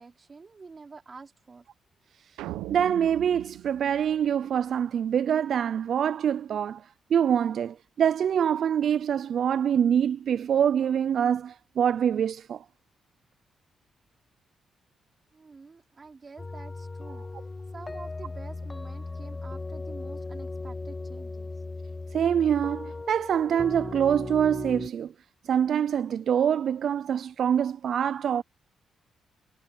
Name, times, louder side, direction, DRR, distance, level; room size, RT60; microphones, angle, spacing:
voice 1, 0.0-1.6 15.3-17.2 17.7-21.5, right 4 dB, 40° right, 5.2 m, -47 dB
sound 1, 2.4-4.8, right 16 dB, 85° right, 1.0 m, -40 dB
voice 2, 2.7-6.8 7.1-12.6 17.1-17.2 22.1-25.1 25.4-28.4, right 8 dB, 65° right, 0.4 m, -25 dB
sound 2, 16.4-24.9, left 3 dB, 30° left, 0.7 m, -37 dB
supercardioid pair, 50°, 0 cm